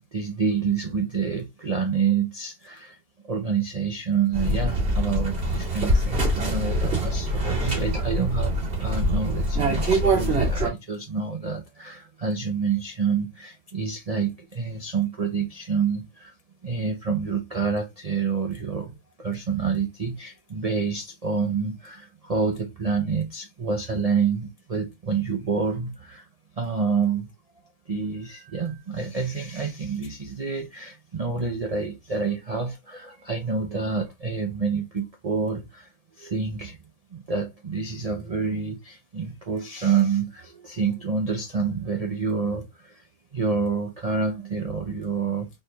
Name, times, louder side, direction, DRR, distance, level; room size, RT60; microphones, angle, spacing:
voice 1, 0.1-3.0 3.2-16.3 16.6-26.2 26.6-27.3 27.9-35.9 36.2-36.8 37.1-43.0 43.3-45.5, right 5 dB, 60° right, 0.4 m, -28 dB
sound 1, 4.3-10.7, right 1 dB, 40° right, 2.3 m, -24 dB
4.4 x 3.2 x 3.3 m
omnidirectional pair, 1.7 m